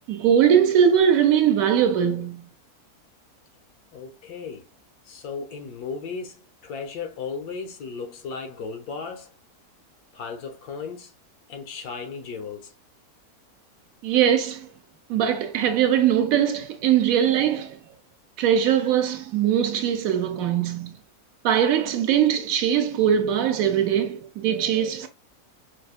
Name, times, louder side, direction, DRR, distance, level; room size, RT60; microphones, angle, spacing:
voice 1, 0.1-2.5 14.0-14.7 15.1-17.8 18.4-21.0 21.4-25.1, right 9 dB, 75° right, 1.0 m, -21 dB
voice 2, 3.9-4.7 5.0-9.3 10.1-11.1 11.5-12.7, left 5 dB, 85° left, 1.3 m, -35 dB
5.3 x 2.1 x 2.4 m
omnidirectional pair, 1.6 m